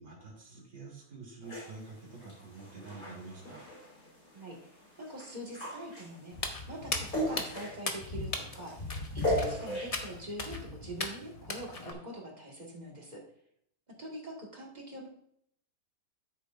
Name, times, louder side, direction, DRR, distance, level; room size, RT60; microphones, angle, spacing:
voice 1, 0.0-3.7, right 3 dB, 85° right, -3 dB, 3.6 m, -47 dB
sound 1, 1.4-10.2, equal, 55° left, 3.9 m, -39 dB
voice 2, 4.3-6.3 6.7-13.2 14.0-15.1, right 1 dB, 25° right, -1 dB, 1.7 m, -44 dB
Walk footsteps, 6.3-11.9, left 2 dB, 30° left, 0.8 m, -38 dB
13.0 x 6.7 x 2.5 m, 0.70 s
omnidirectional pair, 1.8 m